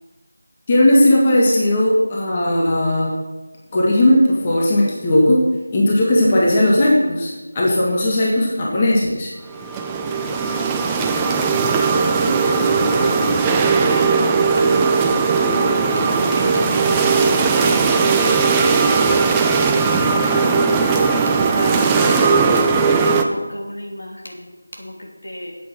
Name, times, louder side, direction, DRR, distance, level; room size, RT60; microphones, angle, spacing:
voice 1, 0.7-3.1 3.7-5.4 5.7-9.3, left 1 dB, 20° left, -4 dB, 1.7 m, -16 dB
sound 1, 9.5-23.2, right 4 dB, 10° right, 0.5 m, -18 dB
voice 2, 11.0-11.9 12.2-14.2 14.6-15.1 15.4-15.8 16.4-16.9 17.3-19.0 19.8-22.3 23.0-25.5, left 1 dB, 70° left, 1 dB, 3.0 m, -32 dB
8.4 x 8.3 x 7.1 m, 1.2 s
figure-of-eight pair, 170°, 0 cm